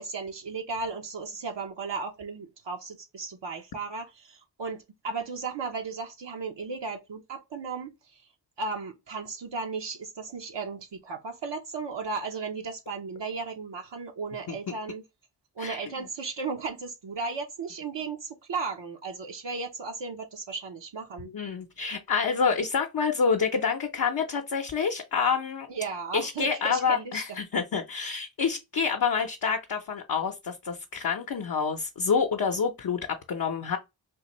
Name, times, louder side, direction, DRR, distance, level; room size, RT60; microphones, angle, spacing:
voice 1, 0.0-8.2 8.6-15.0 15.6-21.3 25.7-27.2, right 4 dB, 70° right, 0.7 m, -35 dB
voice 2, 21.3-25.7 26.1-33.8, left 6 dB, 55° left, 0.6 m, -28 dB
3.6 x 2.5 x 2.9 m
cardioid pair, 50°, 44 cm